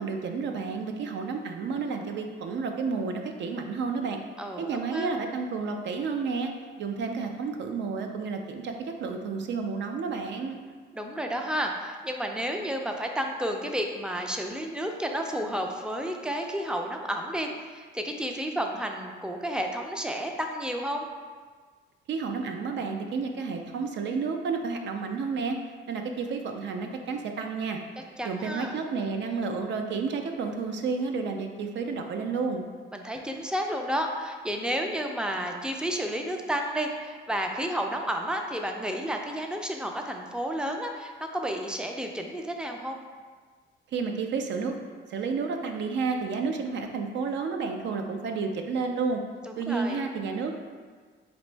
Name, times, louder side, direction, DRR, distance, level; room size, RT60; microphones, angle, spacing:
voice 1, 0.0-4.2 4.6-6.5 6.8-10.6 22.1-25.6 25.9-27.8 28.2-32.6 43.9-44.7 45.1-49.2 49.6-50.5, right 4 dB, 65° right, 4 dB, 0.4 m, -31 dB
voice 2, 4.4-5.1 10.9-21.1 28.2-28.7 32.9-43.0 49.7-50.0, equal, 5° right, 3 dB, 0.4 m, -31 dB
4.0 x 2.6 x 3.3 m, 1.5 s
cardioid pair, 90°, 20 cm